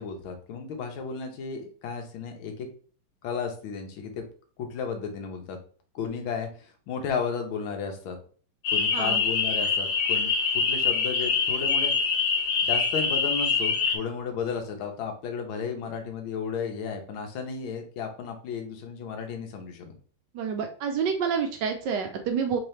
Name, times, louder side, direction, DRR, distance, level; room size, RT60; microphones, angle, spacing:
voice 1, 0.0-2.7 3.2-4.2 4.6-5.6 5.9-8.2 8.7-11.9 12.6-19.9, left 6 dB, 80° left, 4 dB, 1.6 m, -34 dB
sound 1, 8.6-14.0, left 5 dB, 60° left, 1.3 m, -25 dB
voice 2, 20.3-22.6, right 6 dB, 75° right, 4 dB, 1.1 m, -28 dB
3.7 x 2.8 x 3.1 m, 0.42 s
omnidirectional pair, 2.2 m